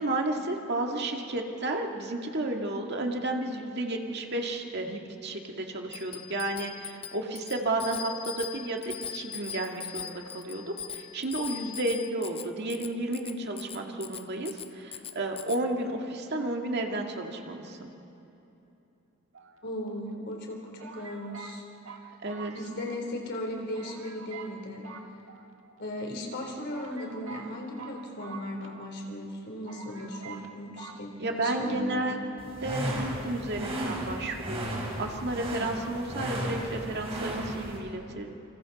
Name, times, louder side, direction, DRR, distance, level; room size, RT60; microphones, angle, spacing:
voice 1, 0.0-17.9 22.2-22.5 31.2-32.2 32.6-38.3, right 2 dB, 55° right, 2 dB, 2.0 m, -32 dB
Bicycle bell, 5.9-15.6, left 9 dB, 30° left, 0.6 m, -41 dB
sound 1, 19.3-20.1 20.8-23.1 23.4-23.5 23.7-24.6 24.8-25.8 26.3-26.4 26.7-29.0 29.3-29.4 29.7-30.5 30.8-31.0, right 5 dB, 75° right, 1.7 m, -46 dB
voice 2, 19.6-21.6 22.5-24.8 25.8-32.2, left 1 dB, 55° left, 1 dB, 3.8 m, -37 dB
sound 2, 32.4-37.8, right 1 dB, 30° right, 4.5 m, -34 dB
28.5 x 27.0 x 4.2 m, 2.9 s
head